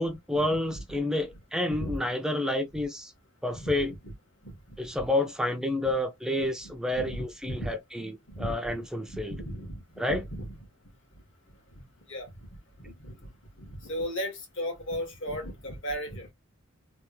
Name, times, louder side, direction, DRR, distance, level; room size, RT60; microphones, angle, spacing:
voice 1, 0.0-3.1 3.4-3.9 4.8-8.1 8.4-9.4 10.0-10.2, left 1 dB, 5° right, 0.5 m, -29 dB
voice 2, 4.4-4.8 5.8-5.9 6.4-7.7 8.3-8.7 9.1-9.8 10.1-10.5 11.7-11.8 12.1-12.3 12.8-13.1 13.6-16.3, equal, 65° left, 1.6 m, -36 dB
3.4 x 2.4 x 3.0 m
head